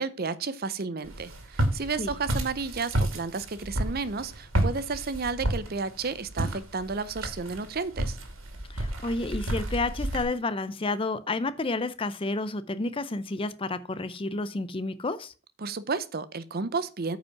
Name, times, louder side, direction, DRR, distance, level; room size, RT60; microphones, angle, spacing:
voice 1, 0.0-8.2 15.6-17.2, right 4 dB, 45° right, 0.6 m, -32 dB
Walk footsteps, 1.0-10.2, right 1 dB, 65° right, 2.3 m, -31 dB
voice 2, 8.7-15.3, left 2 dB, 25° left, 0.5 m, -30 dB
9.2 x 5.2 x 5.8 m
head